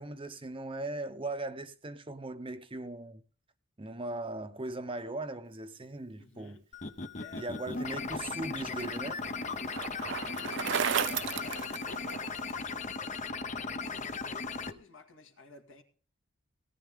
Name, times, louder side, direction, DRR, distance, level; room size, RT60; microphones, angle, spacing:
voice 1, 0.0-3.2 3.8-6.6 7.3-9.3, right 2 dB, 25° right, 0.8 m, -39 dB
voice 2, 6.2-6.7 7.0-7.5 7.7-7.8 9.4-10.9 11.2-12.0 12.3-12.8 13.5-15.8, left 4 dB, 70° left, 2.1 m, -54 dB
sound 1, 6.7-14.7, left 4 dB, 35° left, 0.8 m, -37 dB
Bicycle, 8.1-12.5, right 8 dB, 60° right, 0.5 m, -35 dB
18.0 x 10.5 x 3.6 m
head